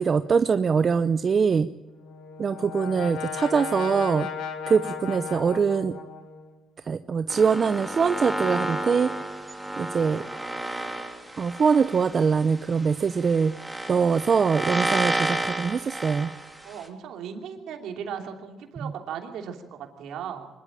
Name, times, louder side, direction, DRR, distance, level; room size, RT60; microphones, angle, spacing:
voice 1, 0.0-1.7 2.4-4.3 4.7-5.9 6.8-9.1 9.8-10.2 11.4-13.6 13.9-16.3 18.8-18.9, right 6 dB, 45° right, 11 dB, 0.7 m, -23 dB
Brass instrument, 1.9-6.6, left 6 dB, 85° left, 1.9 m, -35 dB
sound 1, 7.3-16.9, right 1 dB, 5° right, 3.2 m, -31 dB
voice 2, 16.6-20.5, right 7 dB, 80° right, 4 dB, 2.9 m, -37 dB
24.5 x 12.0 x 8.8 m, 1.1 s
cardioid pair, 90°, 0 cm